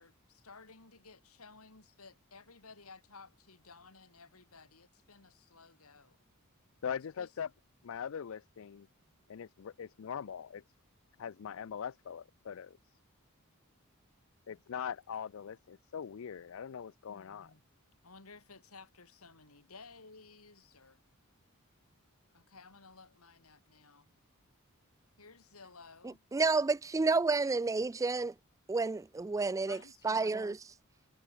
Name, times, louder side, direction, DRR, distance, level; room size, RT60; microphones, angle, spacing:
voice 1, 0.0-6.2 7.2-7.3 17.1-17.6 18.0-21.0 22.3-24.1 25.2-26.2 29.7-30.6, left 4 dB, 85° left, 3.9 m, -56 dB
voice 2, 6.8-7.5 7.8-8.9 9.3-10.6 11.2-12.8 14.5-17.5, left 7 dB, 65° left, 0.4 m, -41 dB
voice 3, 26.3-28.3 28.7-29.8 30.0-30.6, right 3 dB, 15° right, 0.3 m, -30 dB
head